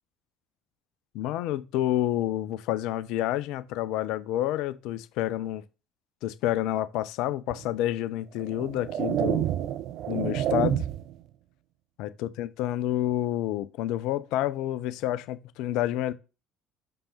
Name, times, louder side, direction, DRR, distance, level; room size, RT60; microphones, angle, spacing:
voice 1, 1.1-5.6 6.2-9.5 10.1-10.9 12.0-16.1, left 13 dB, 60° left, 0.5 m, -29 dB
sound 1, 7.5-7.6 8.4-11.2, right 11 dB, 55° right, 0.6 m, -29 dB
5.6 x 5.4 x 4.3 m
figure-of-eight pair, 60°, 0 cm